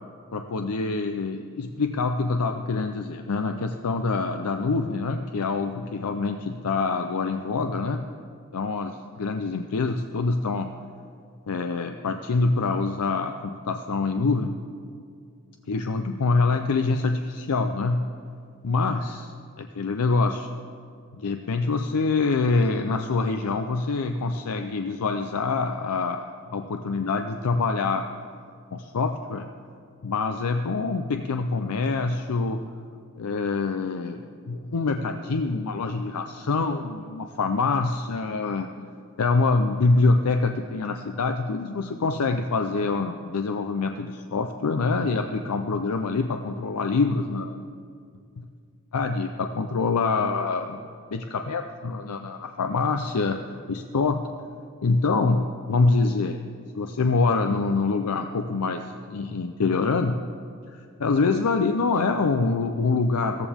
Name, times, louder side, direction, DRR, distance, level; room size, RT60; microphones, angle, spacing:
voice 1, 0.3-8.0 8.5-10.7 11.5-14.5 15.7-18.1 18.6-20.5 21.1-28.0 28.7-29.5 30.0-32.6 33.2-38.7 39.2-47.6 48.4-48.5 48.9-50.8 51.1-53.4 53.7-54.2 54.8-56.4 56.8-60.2 60.7-63.5, left 3 dB, 90° left, 6 dB, 0.5 m, -25 dB
15.5 x 14.0 x 3.5 m, 2.2 s
head